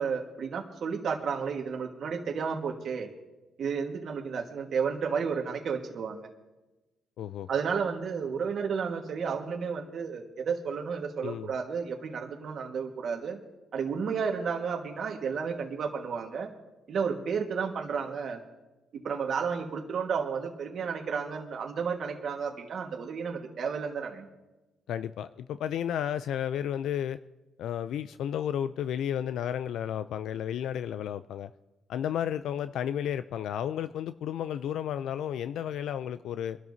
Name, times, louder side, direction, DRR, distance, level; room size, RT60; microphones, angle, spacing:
voice 1, 0.0-3.1 3.6-6.3 7.5-13.4 13.7-16.5 16.9-18.4 19.0-24.3, right 6 dB, 60° right, 2 dB, 1.5 m, -32 dB
voice 2, 7.2-7.5 11.2-11.5 24.9-27.2 27.6-31.5 31.9-36.6, left 10 dB, 80° left, 12 dB, 0.4 m, -32 dB
24.5 x 12.0 x 2.7 m, 1.1 s
cardioid pair, 90°, 0 cm